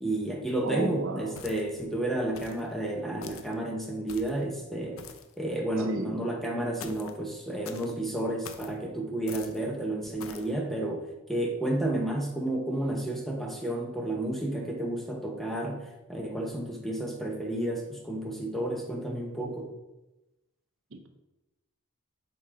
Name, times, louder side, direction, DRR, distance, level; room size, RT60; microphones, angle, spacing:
voice 1, 0.0-5.1 5.4-19.7, right 1 dB, ahead, 1 dB, 0.8 m, -31 dB
voice 2, 0.6-1.4 5.8-6.1 20.9-21.1, right 2 dB, 65° right, 6 dB, 0.7 m, -33 dB
sound 1, 1.4-1.8 2.4-2.7 3.2-3.5 4.1-4.4 5.0-5.3 6.8-7.2 7.6-7.9 8.4-8.7 9.3-9.6 10.2-10.5, left 6 dB, 75° left, 0.6 m, -44 dB
7.0 x 3.7 x 5.0 m, 1.0 s
head